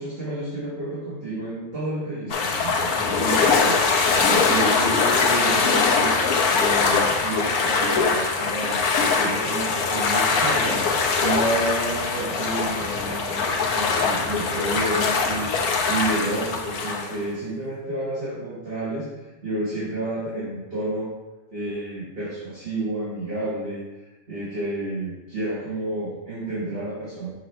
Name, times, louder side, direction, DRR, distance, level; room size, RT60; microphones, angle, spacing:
voice 1, 0.0-21.1 21.5-27.3, right 1 dB, 40° right, -9 dB, 1.7 m, -30 dB
sound 1, 2.3-17.2, left 4 dB, 90° left, 1.3 m, -22 dB
6.1 x 5.9 x 3.2 m, 1.1 s
omnidirectional pair, 1.5 m